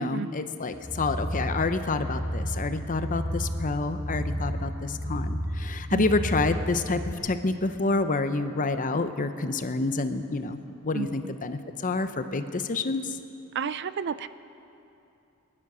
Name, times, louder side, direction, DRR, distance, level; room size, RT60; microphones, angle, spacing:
voice 1, 0.0-13.2, left 3 dB, 40° left, 9 dB, 0.7 m, -28 dB
sound 1, 0.7-7.1, equal, 25° right, 1.3 m, -32 dB
voice 2, 10.9-11.3 13.5-14.3, right 6 dB, 55° right, 15 dB, 0.4 m, -32 dB
21.0 x 11.0 x 6.2 m, 2.7 s
head